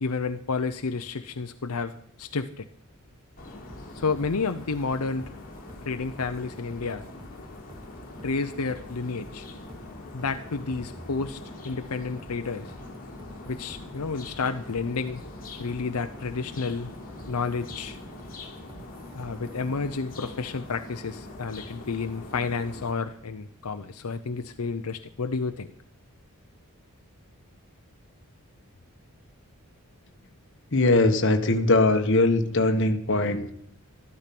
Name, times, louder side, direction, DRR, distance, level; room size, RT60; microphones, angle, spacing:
voice 1, 0.0-1.9 2.2-2.7 4.0-5.3 5.9-7.0 8.2-9.5 10.1-11.4 11.6-12.7 13.5-15.2 15.6-16.9 17.3-18.0 19.1-25.7, left 4 dB, 80° left, 7 dB, 0.7 m, -30 dB
sound 1, 3.4-22.9, left 2 dB, 40° left, 2.7 m, -43 dB
sound 2, 3.7-19.7, equal, 20° right, 1.2 m, -49 dB
voice 2, 30.7-33.5, left 2 dB, 55° left, 6 dB, 1.4 m, -21 dB
14.0 x 12.5 x 6.0 m, 0.63 s
head